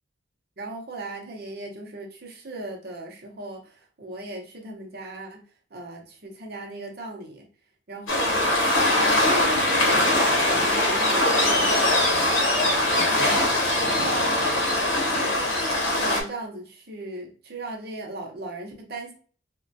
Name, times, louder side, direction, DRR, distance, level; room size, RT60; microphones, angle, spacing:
voice 1, 0.6-5.4 5.7-7.5 7.9-8.5 9.0-12.0 12.9-13.5 13.8-14.4 15.2-19.1, right 2 dB, 50° right, 2 dB, 0.7 m, -36 dB
Waves surf, 8.1-16.2, left 1 dB, 85° left, 0.9 m, -22 dB
3.5 x 2.2 x 2.6 m, 0.41 s
head